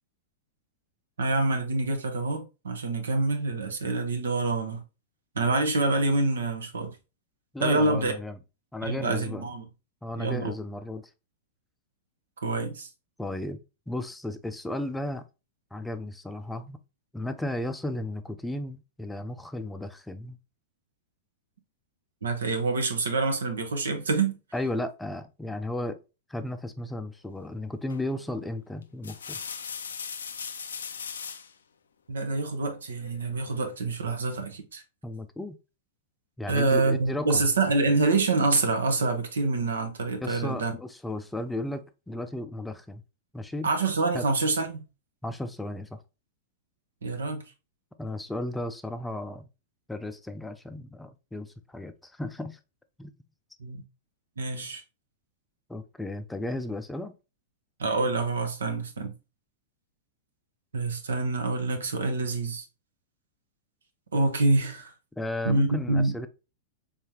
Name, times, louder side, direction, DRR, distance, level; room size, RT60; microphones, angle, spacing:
voice 1, 1.2-4.8 5.3-6.9 7.6-8.1 8.9-9.6 10.2-10.5 12.4-12.9 22.2-24.3 32.1-34.8 36.5-40.7 43.6-44.8 47.0-47.4 53.6-53.8 54.4-54.8 57.8-59.1 60.7-62.6 64.1-64.9 65.4-66.1, right 3 dB, 85° right, 0.9 m, -26 dB
voice 2, 7.5-8.4 8.7-9.5 10.0-11.0 13.2-13.6 13.9-15.3 15.7-16.8 17.1-20.4 24.5-26.0 26.3-29.4 35.0-35.6 36.4-37.4 40.2-43.0 43.3-43.7 44.1-44.3 45.2-46.0 48.0-49.5 49.9-52.6 53.0-53.1 55.7-57.1 65.2-66.3, left 1 dB, 5° left, 0.4 m, -34 dB
sound 1, 27.9-28.2 28.8-31.5 33.0-33.7, left 6 dB, 85° left, 0.4 m, -38 dB
3.6 x 3.4 x 2.8 m
hypercardioid pair, 115°, 0 cm